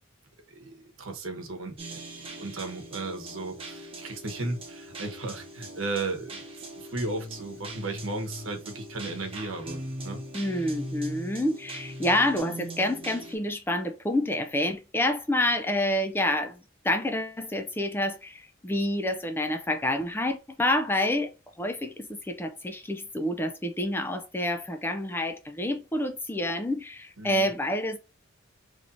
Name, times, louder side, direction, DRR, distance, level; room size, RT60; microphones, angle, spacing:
voice 1, 0.5-10.2 27.2-27.5, right 2 dB, 75° right, 1.0 m, -35 dB
sound 1, 1.8-13.4, right 1 dB, 30° right, 1.0 m, -40 dB
voice 2, 10.3-21.3 21.6-28.0, left 1 dB, 10° left, 0.4 m, -28 dB
3.1 x 2.7 x 3.9 m
head